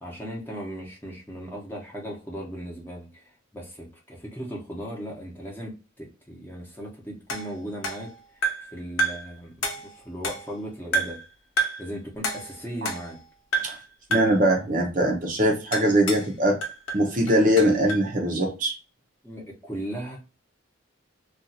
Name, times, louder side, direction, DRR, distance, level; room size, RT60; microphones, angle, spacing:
voice 1, 0.0-3.2 3.5-8.1 8.6-11.2 11.8-13.2 19.2-20.2, equal, 10° left, 0.8 m, -37 dB
sound 1, 7.3-8.7 9.0-9.3 9.6-10.6 10.9-11.3 11.6-11.9 12.2-13.2 13.5-13.8 14.1-14.4 15.7-16.3 16.6-18.1, right 2 dB, 80° left, 1.0 m, -29 dB
voice 2, 14.1-16.6 16.9-18.7, equal, 40° right, 0.6 m, -21 dB
2.5 x 2.4 x 4.0 m
head